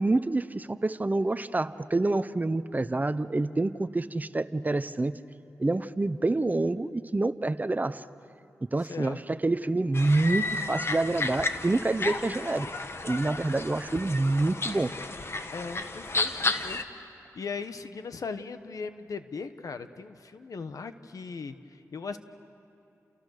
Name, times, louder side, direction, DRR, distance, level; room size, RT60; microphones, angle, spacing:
voice 1, 0.0-5.2 5.6-8.0 8.7-12.7 13.0-14.9, right 2 dB, 30° right, 14 dB, 0.8 m, -27 dB
voice 2, 8.8-9.4 15.5-16.8 17.3-22.2, left 5 dB, 75° left, 10 dB, 1.1 m, -38 dB
sound 1, 9.9-16.8, left 3 dB, 45° left, 1.5 m, -32 dB
30.0 x 29.0 x 6.6 m, 2.9 s
cardioid pair, 65°, 6 cm